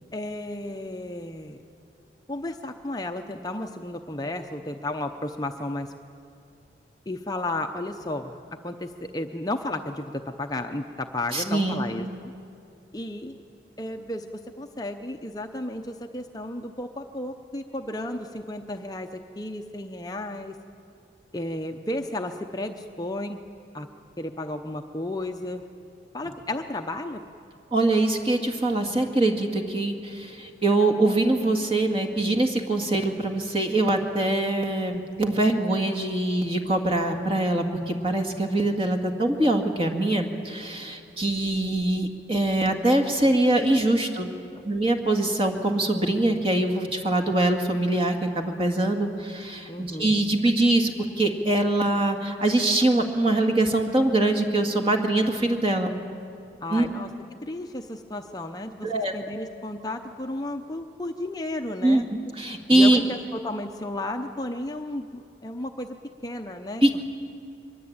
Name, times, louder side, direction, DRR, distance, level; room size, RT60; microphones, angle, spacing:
voice 1, 0.1-1.6 2.3-5.9 7.1-12.3 12.9-13.4 13.8-20.6 21.3-23.4 23.7-23.9 24.2-25.6 26.1-27.2 49.7-50.1 56.6-57.1 57.4-62.1 62.7-66.0 66.2-67.0, left 1 dB, 20° left, 5 dB, 0.7 m, -33 dB
voice 2, 11.3-11.8 27.7-44.3 44.6-50.9 51.2-55.9 56.7-56.9 58.8-59.1 61.8-62.0 62.4-63.0 66.8-67.0, right 2 dB, 30° right, 3 dB, 1.9 m, -23 dB
23.5 x 21.5 x 8.7 m, 2.6 s
head